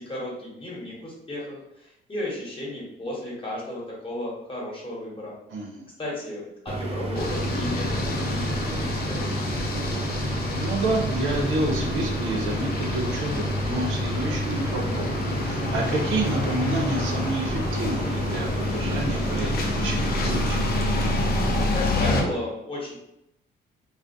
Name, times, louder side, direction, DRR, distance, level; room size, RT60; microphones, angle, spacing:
voice 1, 0.0-5.3 6.0-9.6 21.7-22.9, left 1 dB, 25° left, -5 dB, 1.1 m, -34 dB
voice 2, 5.5-5.9 10.6-15.1 15.4-20.6, right 2 dB, 80° right, 1 dB, 0.6 m, -29 dB
sound 1, 6.7-21.7, right 2 dB, 30° right, 0.4 m, -31 dB
sound 2, 7.2-22.2, left 2 dB, 50° left, 0.5 m, -28 dB
2.4 x 2.0 x 2.5 m, 0.82 s
cardioid pair, 90°, 20 cm